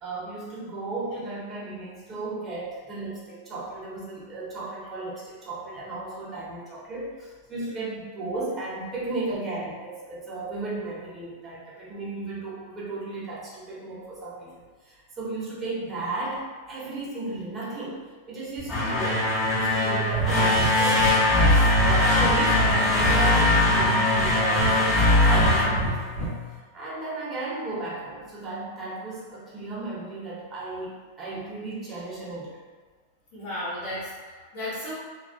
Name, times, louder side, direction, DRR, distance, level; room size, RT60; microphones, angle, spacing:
voice 1, 0.0-19.3 19.5-21.1 21.4-26.4 26.7-32.6, right 2 dB, 25° right, -6 dB, 0.9 m, -35 dB
sound 1, 18.6-26.5, left 1 dB, 15° left, 1.1 m, -21 dB
Breathing, 20.1-20.3 20.5-20.7 21.0-21.1 21.4-22.7 23.0-23.9 24.2-25.1 25.4-26.3, right 3 dB, 90° left, 0.9 m, -28 dB
voice 2, 33.3-34.9, left 1 dB, 55° left, -10 dB, 1.1 m, -34 dB
2.4 x 2.3 x 2.2 m, 1.5 s
hypercardioid pair, 115°, 0 cm